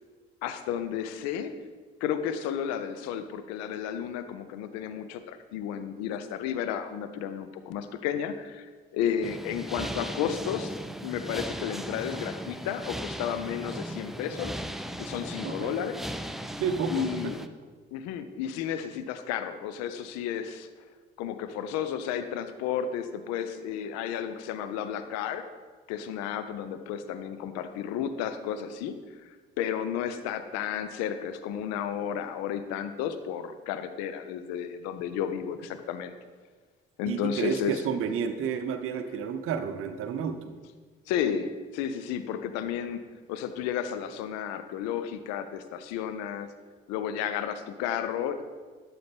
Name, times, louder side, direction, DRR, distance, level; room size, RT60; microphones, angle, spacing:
voice 1, 0.4-1.5 2.0-10.7 11.0-14.6 15.0-16.1 16.9-17.4 17.9-20.9 21.2-25.4 25.9-36.1 37.0-37.8 41.1-43.0 43.3-46.5 46.9-48.4, left 9 dB, 60° left, 11 dB, 0.6 m, -32 dB
sound 1, 9.2-17.5, equal, ahead, 0.4 m, -37 dB
voice 2, 15.4-15.7 16.6-17.3 37.1-40.5, right 6 dB, 50° right, 8 dB, 0.6 m, -31 dB
11.5 x 4.2 x 3.4 m, 1.5 s
figure-of-eight pair, 45°, 29 cm